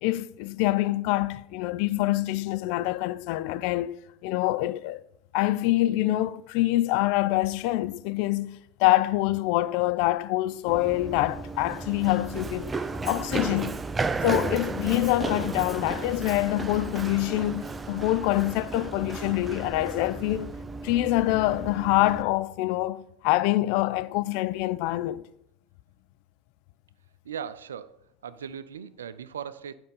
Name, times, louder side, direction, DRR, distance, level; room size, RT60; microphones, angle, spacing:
voice 1, 0.0-4.0 4.2-5.0 5.3-12.7 13.0-13.8 14.2-20.6 20.8-25.3, left 16 dB, 60° left, 0.4 m, -25 dB
Run, 10.7-22.2, right 3 dB, 20° right, 0.6 m, -34 dB
voice 2, 27.2-29.7, right 8 dB, 80° right, 0.5 m, -38 dB
11.0 x 5.1 x 5.3 m
figure-of-eight pair, 75°, 0 cm